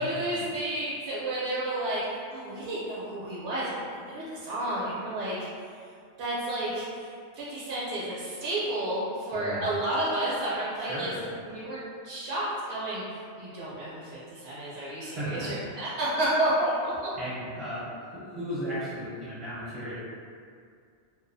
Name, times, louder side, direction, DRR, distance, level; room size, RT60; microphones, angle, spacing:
voice 1, 0.0-2.0 2.3-5.4 6.2-11.1 11.4-16.9, right 1 dB, 65° right, -9 dB, 0.8 m, -31 dB
voice 2, 9.3-9.8 10.8-11.3 15.0-15.6 17.2-19.9, equal, 35° right, -12 dB, 0.6 m, -36 dB
2.3 x 2.3 x 2.5 m, 2.3 s
omnidirectional pair, 1.3 m